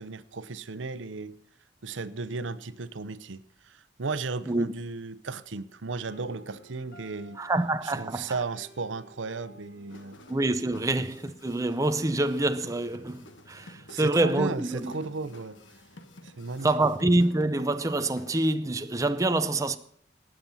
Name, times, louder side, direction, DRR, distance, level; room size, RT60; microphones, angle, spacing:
voice 1, 0.0-1.4 1.8-7.4 7.8-10.2 13.9-15.6 16.2-16.7, right 4 dB, 90° right, 0.8 m, -35 dB
sound 1, 6.1-14.1, equal, 50° left, 2.5 m, -56 dB
voice 2, 7.4-8.4 10.3-14.9 16.6-19.8, right 2 dB, 15° right, 0.6 m, -26 dB
sound 2, 9.9-18.4, left 1 dB, 85° left, 1.5 m, -51 dB
19.0 x 7.7 x 5.5 m
head